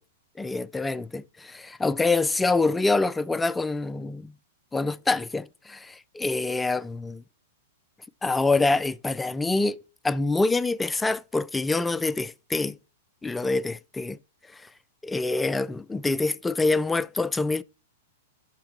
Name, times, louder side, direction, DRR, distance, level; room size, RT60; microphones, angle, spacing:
voice 1, 0.4-4.3 4.7-7.2 8.2-12.8 13.2-14.2 15.0-17.6, left 3 dB, 10° left, 0.3 m, -26 dB
7.2 x 5.9 x 5.1 m
hypercardioid pair, 130°, 0 cm